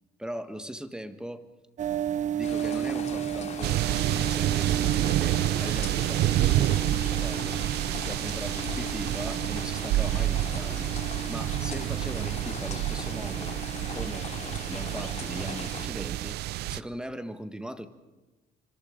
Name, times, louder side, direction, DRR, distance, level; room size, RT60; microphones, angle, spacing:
voice 1, 0.2-1.4 2.3-7.6 8.0-13.6 13.9-16.4 16.7-17.9, equal, 5° right, 10 dB, 1.6 m, -40 dB
sound 1, 1.8-16.3, right 9 dB, 45° right, 0.8 m, -35 dB
sound 2, 2.4-15.9, left 6 dB, 40° left, 3.1 m, -40 dB
sound 3, 3.6-16.8, right 15 dB, 75° right, 0.6 m, -28 dB
27.0 x 24.5 x 5.2 m, 1.2 s
cardioid pair, 110°, 17 cm